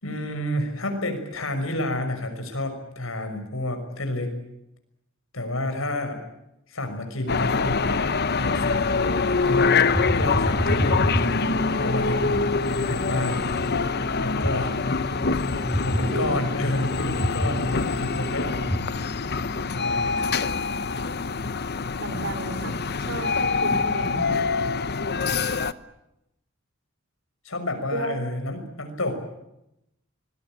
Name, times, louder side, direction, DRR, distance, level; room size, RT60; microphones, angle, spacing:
voice 1, 0.0-4.3 5.3-6.2 6.7-8.1 8.3-11.5 11.8-13.6 14.2-15.0 15.8-18.7 19.7-20.4 27.4-29.1, left 1 dB, 90° left, 6 dB, 6.1 m, -30 dB
sound 1, 7.3-25.7, left 4 dB, 55° left, 1.0 m, -25 dB
sound 2, 9.3-18.8, equal, 5° left, 1.9 m, -30 dB
voice 2, 15.9-16.3 22.0-24.5 27.9-28.3, right 1 dB, 65° right, 9 dB, 3.9 m, -33 dB
25.5 x 21.0 x 9.0 m, 0.85 s
head